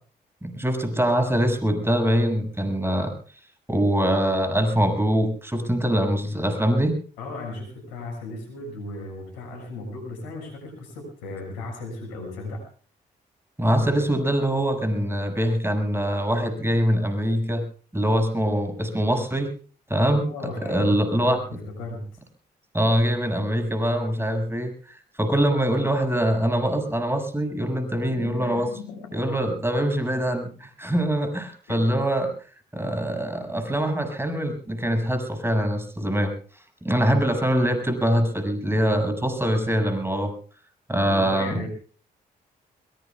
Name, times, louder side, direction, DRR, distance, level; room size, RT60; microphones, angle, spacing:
voice 1, 0.4-3.1 3.7-7.0 13.6-17.6 17.9-19.5 19.9-21.4 22.7-28.7 29.1-32.3 32.7-36.3 36.8-40.3 40.9-41.5, equal, 10° right, 7 dB, 6.8 m, -23 dB
voice 2, 7.2-12.6 20.2-22.1 28.1-29.2 31.7-31.8 41.1-41.7, left 2 dB, 90° left, 3 dB, 6.5 m, -36 dB
23.5 x 22.0 x 2.4 m, 0.41 s
hypercardioid pair, 45°, 20 cm